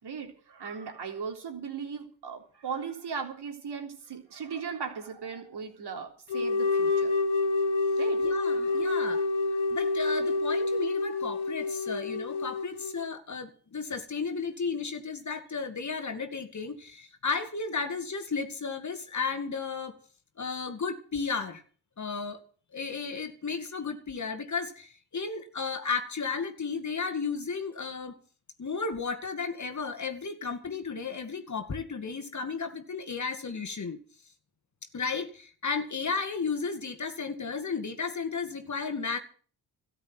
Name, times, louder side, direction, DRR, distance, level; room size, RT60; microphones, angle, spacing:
voice 1, 0.0-7.1 8.0-9.1, right 6 dB, 55° right, 3.7 m, -38 dB
sound 1, 6.3-13.1, left 3 dB, 70° left, 2.1 m, -28 dB
voice 2, 8.2-9.3 9.7-20.0 20.4-21.6 22.0-22.4 22.7-28.2 28.6-34.0 34.9-39.2, left 5 dB, 35° left, 2.2 m, -34 dB
13.0 x 8.2 x 9.6 m
hypercardioid pair, 50°, 48 cm